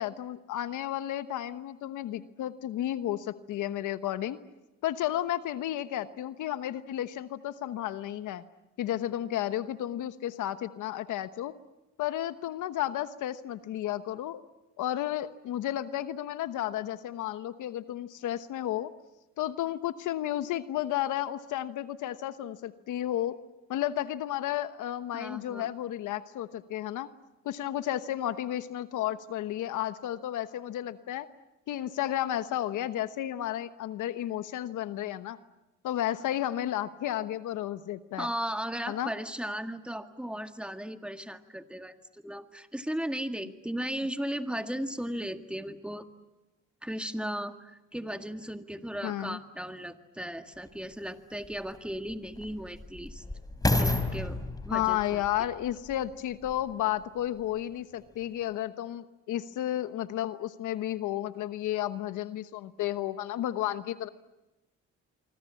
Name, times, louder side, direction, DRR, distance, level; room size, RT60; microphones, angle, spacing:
voice 1, 0.0-4.4 4.8-8.4 8.8-11.5 12.0-14.4 14.8-18.9 19.4-23.4 23.7-27.1 27.4-31.3 31.7-35.4 35.8-38.3 38.9-39.1 49.0-49.4 54.7-64.1, left 12 dB, 85° left, 12 dB, 1.1 m, -32 dB
voice 2, 25.1-25.7 38.2-46.1 46.8-53.2 53.7-55.2, equal, 5° right, 7 dB, 1.9 m, -36 dB
sound 1, 50.6-50.7 51.4-56.7 57.4-57.5, left 2 dB, 10° left, 3.6 m, -32 dB
26.0 x 24.5 x 8.4 m, 1.0 s
cardioid pair, 90°, 30 cm